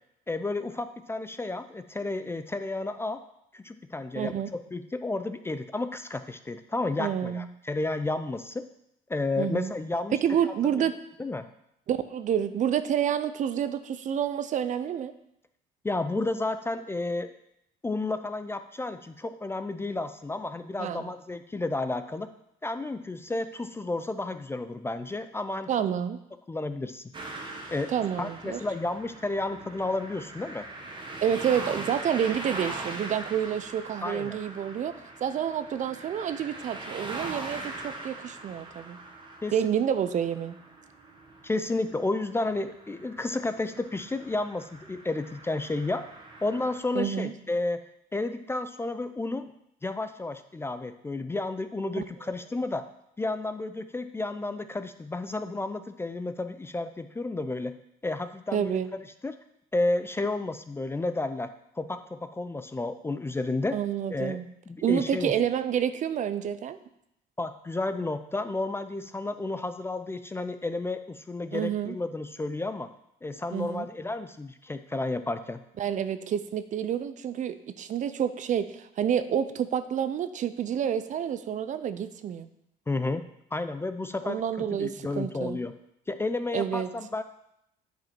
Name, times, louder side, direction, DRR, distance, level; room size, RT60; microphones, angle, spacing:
voice 1, 0.3-3.2 3.5-8.6 9.1-10.5 11.2-11.4 15.8-17.3 17.8-22.3 22.6-25.9 26.5-27.0 27.7-27.9 28.2-30.7 34.0-34.4 39.4-39.5 41.4-46.0 46.4-47.8 48.1-49.5 49.8-52.8 53.2-57.7 58.0-58.8 59.2-59.4 59.7-61.5 61.8-63.8 64.1-64.4 64.7-65.3 67.4-72.9 73.2-75.6 82.9-84.4 84.7-85.7 86.1-87.2, left 2 dB, 15° left, 10 dB, 0.4 m, -31 dB
voice 2, 4.2-4.5 7.0-7.4 9.4-9.7 10.2-10.9 11.9-15.1 20.8-21.1 25.7-26.2 27.9-28.6 31.2-34.9 35.2-39.0 39.5-40.6 46.9-47.3 52.0-52.1 58.5-58.9 63.7-64.5 64.8-66.8 71.5-72.0 73.5-73.9 75.8-82.5 84.2-85.6 86.5-86.9, right 9 dB, 45° right, 12 dB, 0.5 m, -29 dB
sound 1, 27.1-46.8, right 2 dB, 30° right, 1.4 m, -41 dB
9.0 x 5.2 x 4.4 m, 0.78 s
cardioid pair, 110°, 17 cm